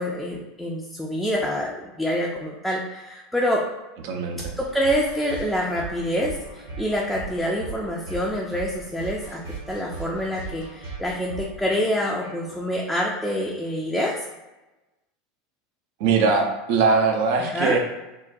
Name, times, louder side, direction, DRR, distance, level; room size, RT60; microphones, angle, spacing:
voice 1, 0.0-3.6 4.6-9.4 9.7-14.2 17.4-17.8, equal, 5° left, -3 dB, 0.4 m, -26 dB
voice 2, 4.0-4.5 16.0-17.8, right 4 dB, 60° right, 3 dB, 0.5 m, -21 dB
sound 1, 4.4-12.8, right 4 dB, 80° right, 1.2 m, -38 dB
3.8 x 2.2 x 2.5 m, 1.0 s
figure-of-eight pair, 80°, 0 cm